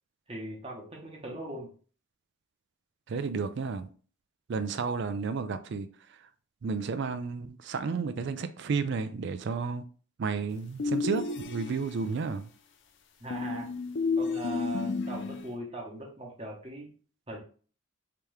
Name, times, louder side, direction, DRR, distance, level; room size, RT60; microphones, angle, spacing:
voice 1, 0.3-1.7 13.2-13.7 14.2-16.9 17.3-17.4, right 1 dB, 25° right, 0.9 m, -39 dB
voice 2, 3.1-3.9 4.5-5.9 6.6-9.8 10.2-12.5, right 5 dB, 50° right, 0.3 m, -32 dB
sound 1, 10.8-12.1 13.3-15.5, left 4 dB, 55° left, 0.4 m, -31 dB
3.5 x 2.9 x 3.2 m
head